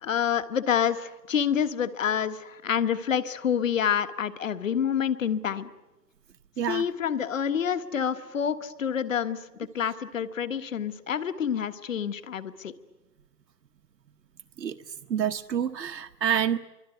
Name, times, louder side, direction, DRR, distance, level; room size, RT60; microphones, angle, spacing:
voice 1, 0.0-5.7 6.7-9.4 9.7-12.7, left 8 dB, 50° left, 11 dB, 1.6 m, -27 dB
voice 2, 15.1-16.6, right 9 dB, 75° right, 7 dB, 1.3 m, -27 dB
25.0 x 24.5 x 9.3 m, 1.1 s
hypercardioid pair, 160°, 50 cm